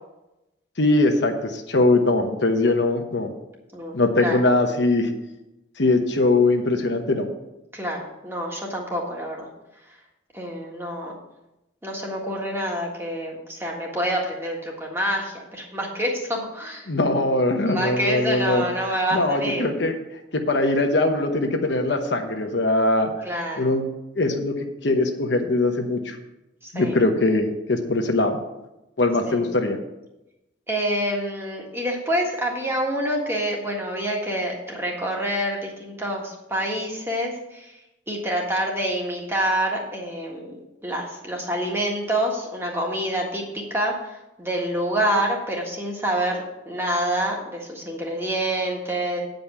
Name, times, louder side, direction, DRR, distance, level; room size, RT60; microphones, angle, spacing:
voice 1, 0.8-3.3 3.9-5.1 5.8-7.3 16.9-19.9 20.3-23.1 23.6-23.8 24.2-24.5 24.8-26.2 26.7-28.4 29.0-29.8, left 2 dB, 65° left, 4 dB, 1.0 m, -21 dB
voice 2, 3.7-4.4 7.7-9.5 10.3-11.1 11.8-16.9 17.2-17.3 17.6-19.7 23.2-23.6 26.6-27.0 29.3-29.4 30.7-37.7 38.1-40.6 40.8-49.2, right 1 dB, 15° right, -1 dB, 1.6 m, -27 dB
9.3 x 5.2 x 7.1 m, 0.95 s
head